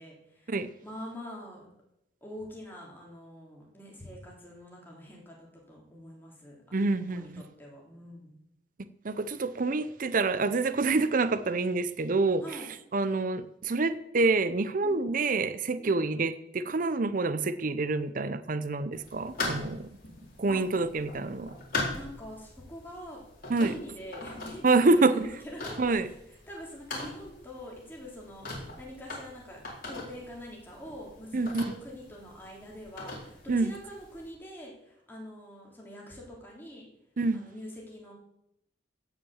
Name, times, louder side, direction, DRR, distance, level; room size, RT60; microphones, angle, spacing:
voice 1, 0.0-0.5 0.8-1.7 2.2-6.6 7.0-8.4 12.4-12.7 14.8-15.0 15.8-16.0 20.5-20.6 21.9-23.2 23.6-26.1 26.5-36.8 37.3-38.1, equal, 10° left, -3 dB, 3.4 m, -44 dB
voice 2, 6.7-7.3 9.0-12.4 12.9-19.9 20.4-21.6 23.5-23.7 24.6-25.3 25.8-26.1 31.3-31.6 33.5-33.7 37.2-37.4, right 3 dB, 50° right, 13 dB, 0.6 m, -27 dB
sound 1, 18.9-34.3, left 3 dB, 50° left, 4.1 m, -41 dB
16.0 x 5.9 x 7.2 m, 0.81 s
head